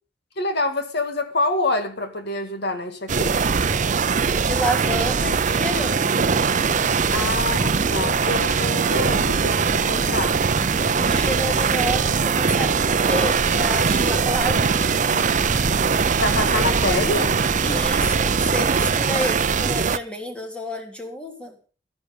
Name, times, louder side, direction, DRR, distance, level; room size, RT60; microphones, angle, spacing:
voice 1, 0.4-3.6 7.1-10.4 16.2-17.4, left 2 dB, 65° left, 2.2 m, -26 dB
sound 1, 3.1-20.0, right 5 dB, 45° right, 0.6 m, -21 dB
voice 2, 4.3-6.3 10.9-14.8 17.6-21.5, equal, 5° left, 3.1 m, -29 dB
sound 2, 6.2-18.1, equal, 30° left, 2.5 m, -34 dB
14.0 x 10.5 x 5.3 m
head